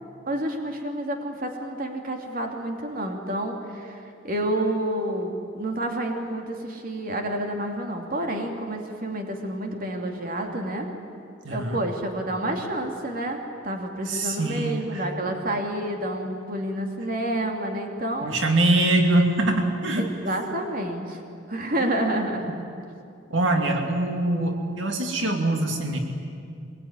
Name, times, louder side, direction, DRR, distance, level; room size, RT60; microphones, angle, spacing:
voice 1, 0.3-10.9 11.5-18.3 20.0-21.2 21.5-22.5, right 1 dB, 50° right, 3 dB, 2.7 m, -29 dB
voice 2, 11.4-11.8 14.1-15.0 18.2-20.1 23.3-26.0, right 2 dB, 75° right, 3 dB, 2.6 m, -23 dB
23.5 x 22.0 x 9.9 m, 2.5 s
head